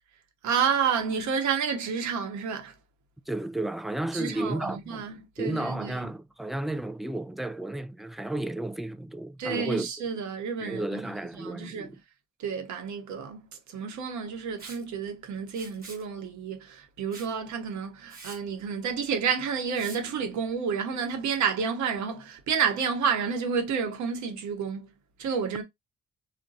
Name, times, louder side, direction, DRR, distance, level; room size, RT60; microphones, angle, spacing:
voice 1, 0.4-2.7 4.1-6.1 9.4-11.0 11.3-11.9 12.4-24.9 25.2-25.6, right 6 dB, 75° right, 0.9 m, -30 dB
voice 2, 3.3-5.1 5.4-9.9 10.6-11.9, right 1 dB, ahead, 0.4 m, -32 dB
Liquid, 14.6-14.8 15.5-16.0 17.1-17.3 17.7-17.8 18.1-18.4 19.7-20.0, right 3 dB, 30° right, 1.4 m, -45 dB
2.4 x 2.2 x 3.9 m
supercardioid pair, 50°, 29 cm